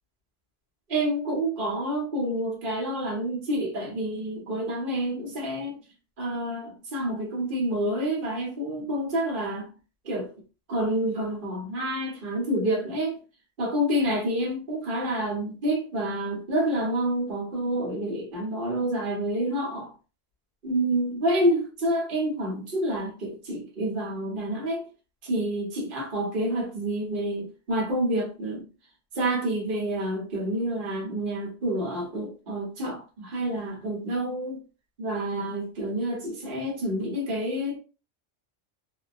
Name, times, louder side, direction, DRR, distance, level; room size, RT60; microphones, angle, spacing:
voice 1, 0.9-5.8 6.2-9.7 10.0-10.3 10.7-13.2 13.6-19.9 20.6-24.8 25.2-28.7 29.1-34.6 35.0-37.8, right 1 dB, 45° right, 1.2 m, -28 dB
2.7 x 2.2 x 2.5 m
omnidirectional pair, 1.3 m